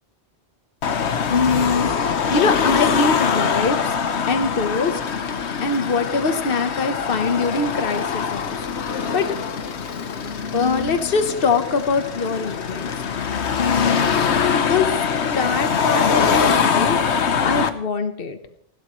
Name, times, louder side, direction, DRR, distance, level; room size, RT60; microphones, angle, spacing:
Car passing by / Traffic noise roadway noise / Engine, 0.8-17.7, left 6 dB, 80° left, 1.3 m, -23 dB
voice 1, 1.3-4.0 4.3-5.0 5.6-8.6 9.1-9.3 10.5-13.0 13.6-14.1 14.7-14.9 15.4-17.0 17.4-18.4, left 4 dB, 55° left, 8 dB, 1.4 m, -23 dB
20.5 x 16.0 x 3.2 m, 0.67 s
omnidirectional pair, 1.1 m